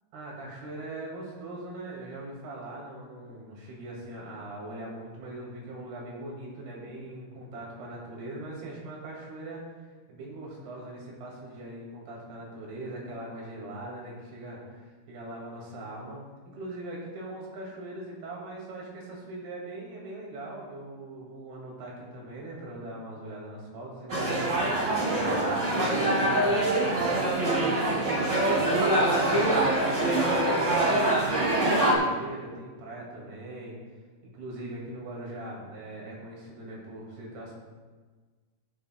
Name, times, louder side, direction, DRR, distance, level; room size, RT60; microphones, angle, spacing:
voice 1, 0.1-9.8 10.1-31.0 31.3-33.8 34.3-37.6, right 1 dB, 85° right, -3 dB, 4.1 m, -41 dB
sound 1, 24.1-32.0, right 1 dB, 60° right, 0.7 m, -24 dB
18.0 x 6.4 x 2.3 m, 1.4 s
omnidirectional pair, 4.4 m